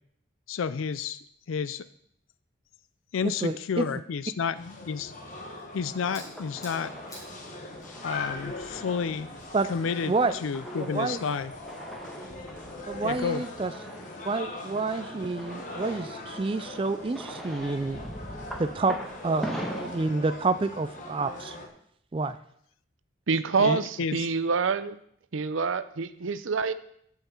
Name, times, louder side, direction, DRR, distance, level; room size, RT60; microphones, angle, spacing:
voice 1, 0.5-1.8 3.1-5.1 5.7-6.9 8.0-9.3 9.7-10.1 10.4-11.5 13.0-13.4 23.6-24.3, left 6 dB, 85° left, 14 dB, 0.4 m, -31 dB
voice 2, 3.2-3.9 9.5-9.7 10.1-10.4 10.8-11.2 12.9-13.7 14.2-18.0 18.6-19.0 19.2-21.6 22.1-22.4 23.6-23.8, right 3 dB, 25° right, 10 dB, 0.3 m, -28 dB
sound 1, 4.5-21.7, left 2 dB, 40° left, 1.4 m, -41 dB
sound 2, 5.3-10.3, left 1 dB, 20° left, 4.6 m, -52 dB
sound 3, 6.1-19.9, equal, ahead, 1.4 m, -43 dB
voice 3, 23.3-25.0 25.3-26.7, right 4 dB, 80° right, 13 dB, 0.6 m, -26 dB
16.0 x 5.7 x 4.4 m, 0.68 s
head